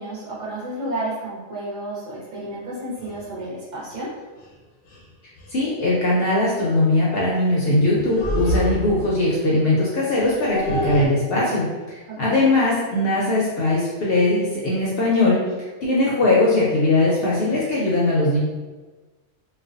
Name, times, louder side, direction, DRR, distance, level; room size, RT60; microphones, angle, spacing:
voice 1, 0.0-4.1 12.3-12.5, right 1 dB, 40° right, -8 dB, 0.9 m, -31 dB
sound 1, 3.0-3.2 4.4-4.5 4.9-5.1 5.4-5.6 7.9-9.2 10.2-11.1, equal, 90° left, 1.0 m, -26 dB
voice 2, 5.5-15.4 15.8-18.4, left 2 dB, 65° left, -5 dB, 0.6 m, -20 dB
2.4 x 2.2 x 2.4 m, 1.3 s
omnidirectional pair, 1.3 m